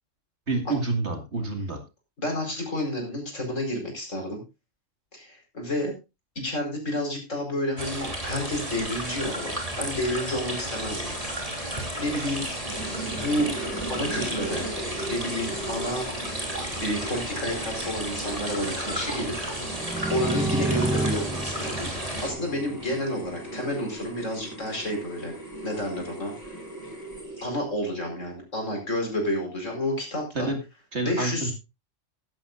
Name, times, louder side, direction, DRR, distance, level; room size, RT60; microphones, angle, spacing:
voice 1, 0.5-1.8 30.3-30.6 30.9-31.5, right 3 dB, 60° right, 5 dB, 2.5 m, -28 dB
voice 2, 2.2-4.4 5.1-5.9 6.3-11.1 11.5-12.5 13.1-13.5 13.9-14.7 15.1-16.1 16.8-19.3 20.1-25.3 25.6-26.3 27.4-30.5 31.0-31.5, left 1 dB, 75° left, 2 dB, 5.1 m, -30 dB
sound 1, 7.8-22.3, right 1 dB, 25° right, 3.4 m, -33 dB
sound 2, 12.7-27.8, right 1 dB, 15° left, 5.9 m, -39 dB
sound 3, 19.8-23.5, right 1 dB, 5° right, 0.5 m, -30 dB
15.5 x 11.5 x 2.5 m, 0.26 s
omnidirectional pair, 1.3 m